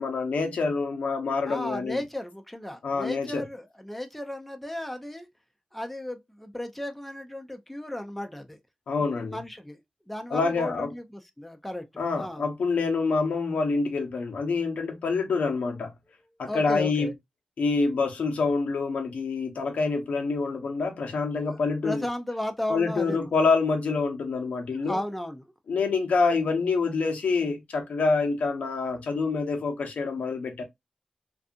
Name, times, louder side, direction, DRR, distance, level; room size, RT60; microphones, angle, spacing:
voice 1, 0.0-2.0 2.8-3.4 8.9-9.4 10.3-10.9 12.0-15.9 16.4-17.1 17.6-22.1 22.7-25.0 25.7-30.6, left 4 dB, 90° left, 0.7 m, -26 dB
voice 2, 1.5-5.3 5.7-8.6 9.0-9.8 10.1-11.8 12.2-12.4 16.5-17.1 21.5-23.3 24.8-25.5, left 1 dB, 5° left, 0.4 m, -35 dB
2.6 x 2.4 x 2.4 m
wide cardioid pair, 105°, 2 cm